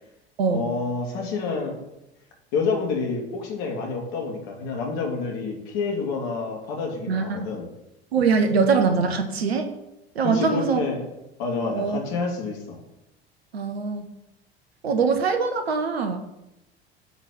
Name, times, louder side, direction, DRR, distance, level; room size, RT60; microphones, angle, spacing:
voice 1, 0.5-1.7 2.5-7.7 10.2-11.0 11.4-12.8, left 4 dB, 55° left, 1 dB, 2.5 m, -28 dB
voice 2, 7.1-7.5 8.1-9.7 10.1-10.8 11.7-12.0 13.5-14.1 14.8-16.2, right 5 dB, 75° right, 7 dB, 1.0 m, -22 dB
9.3 x 4.1 x 6.5 m, 0.90 s
figure-of-eight pair, 70°, 31 cm